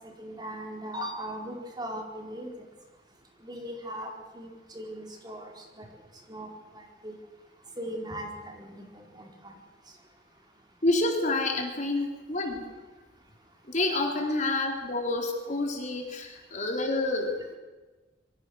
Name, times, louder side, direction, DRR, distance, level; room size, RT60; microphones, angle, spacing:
voice 1, 0.0-2.5 3.4-5.9 6.3-7.2 7.8-9.5, equal, 25° right, 1 dB, 4.5 m, -39 dB
voice 2, 10.8-12.7 13.7-17.5, left 2 dB, 40° left, 2 dB, 3.9 m, -28 dB
26.5 x 24.0 x 6.5 m, 1.2 s
head